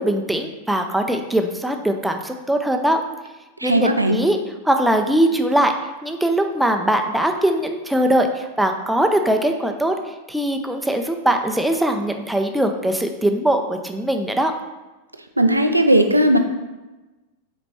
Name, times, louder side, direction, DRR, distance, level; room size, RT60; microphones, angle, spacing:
voice 1, 0.0-3.0 3.6-4.4 4.6-5.7 6.0-9.9 10.3-14.5, right 1 dB, 5° right, 5 dB, 0.5 m, -21 dB
voice 2, 3.6-4.2 15.4-16.4, right 1 dB, 85° right, 6 dB, 0.5 m, -16 dB
5.1 x 4.2 x 4.6 m, 1.1 s
figure-of-eight pair, 90°, 0 cm